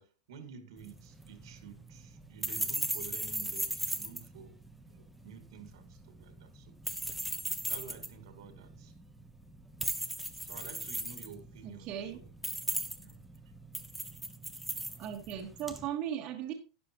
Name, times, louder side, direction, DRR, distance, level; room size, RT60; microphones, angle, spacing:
voice 1, 0.0-4.6 4.9-6.8 7.7-8.9 10.4-12.4 13.0-13.2, right 7 dB, 70° right, 2.1 m, -51 dB
sound 1, 0.8-15.9, right 1 dB, ahead, 0.9 m, -38 dB
voice 2, 11.6-12.2 15.0-16.5, right 10 dB, 35° right, 1.5 m, -37 dB
12.0 x 10.0 x 3.0 m
supercardioid pair, 165°, 3 cm